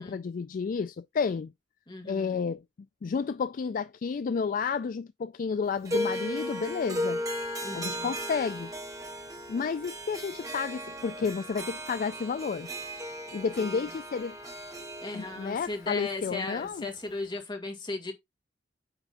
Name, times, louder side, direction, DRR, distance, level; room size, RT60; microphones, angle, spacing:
voice 1, 0.0-1.5 2.1-2.6 3.0-7.2 7.7-8.7 9.5-12.7 13.3-14.4 15.1-16.9, left 5 dB, 45° left, 0.3 m, -31 dB
voice 2, 1.9-2.4 7.6-8.1 13.6-13.9 15.0-18.1, left 3 dB, 25° left, 2.1 m, -37 dB
Harp, 5.9-17.1, equal, 20° right, 1.6 m, -36 dB
9.1 x 3.6 x 4.1 m
head